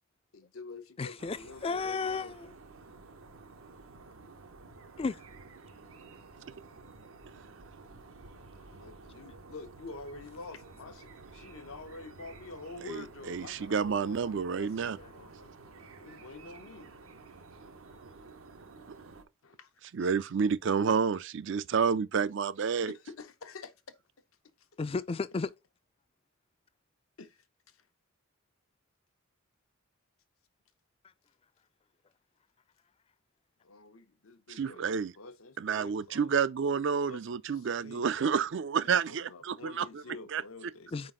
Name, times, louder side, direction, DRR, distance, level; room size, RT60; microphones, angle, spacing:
voice 1, 0.3-2.4 4.2-4.4 8.7-16.9 19.4-19.7 22.9-24.0 27.2-27.8 33.6-36.3 37.1-37.2 37.5-38.1 38.8-40.9, left 3 dB, 90° left, 0.9 m, -48 dB
voice 2, 1.0-2.5 5.0-5.2 24.8-25.5 40.9-41.1, left 4 dB, 25° left, 0.3 m, -33 dB
sound 1, 1.2-19.2, right 3 dB, 80° right, 0.9 m, -52 dB
voice 3, 12.8-15.0 19.9-22.9 34.5-35.1 35.6-40.0 40.3-40.4, right 6 dB, 60° right, 0.4 m, -29 dB
4.9 x 3.8 x 5.0 m
head